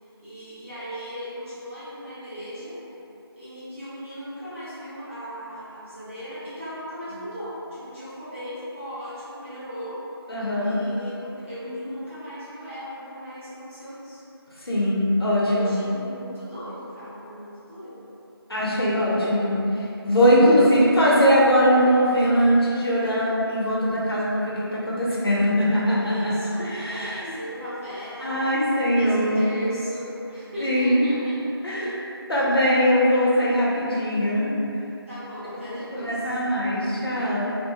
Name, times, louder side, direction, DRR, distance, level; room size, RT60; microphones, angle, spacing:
voice 1, 0.2-2.8 3.3-10.0 10.6-14.2 15.4-18.1 20.2-20.8 26.0-28.4 28.9-31.3 31.6-31.9 35.1-36.2, equal, 30° right, -14 dB, 0.8 m, -37 dB
voice 2, 10.3-10.7 14.6-15.7 18.5-19.6 20.0-26.3 26.6-27.4 28.2-29.5 30.6-31.0 31.6-31.8 32.3-34.5 35.7-37.6, equal, 65° left, -7 dB, 0.7 m, -21 dB
2.2 x 2.0 x 2.7 m, 2.9 s
figure-of-eight pair, 175°, 13 cm